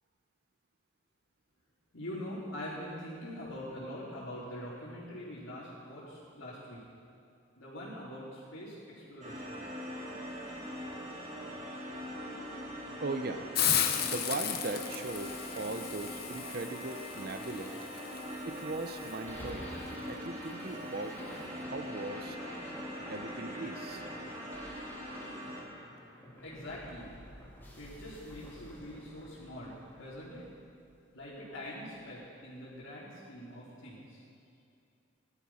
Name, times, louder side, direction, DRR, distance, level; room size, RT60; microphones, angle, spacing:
voice 1, 1.9-6.8 7.6-9.6 26.4-27.2 27.7-30.5 31.1-34.2, left 1 dB, 80° left, -10 dB, 3.6 m, -44 dB
sound 1, 9.2-25.6, equal, 35° right, 2.3 m, -42 dB
voice 2, 13.0-13.5 14.0-17.7 18.5-19.7 20.1-21.2 21.6-22.4 23.1-24.1, right 3 dB, 50° right, 8 dB, 0.6 m, -39 dB
Hiss, 13.5-19.2, left 9 dB, 50° left, 1.0 m, -35 dB
sound 2, 19.2-31.4, equal, 10° left, 2.8 m, -49 dB
18.0 x 12.5 x 5.7 m, 2.6 s
head